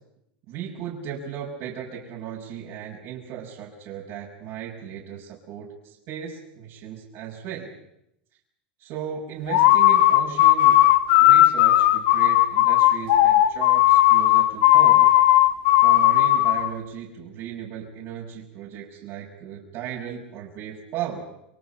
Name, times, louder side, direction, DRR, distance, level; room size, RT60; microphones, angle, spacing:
voice 1, 0.5-7.7 8.8-10.8 11.2-15.1 15.8-21.2, right 8 dB, 55° right, -5 dB, 6.3 m, -36 dB
sound 1, 9.5-16.7, left 14 dB, 70° left, 1.8 m, -16 dB
29.0 x 23.5 x 5.8 m, 0.82 s
hypercardioid pair, 105°, 5 cm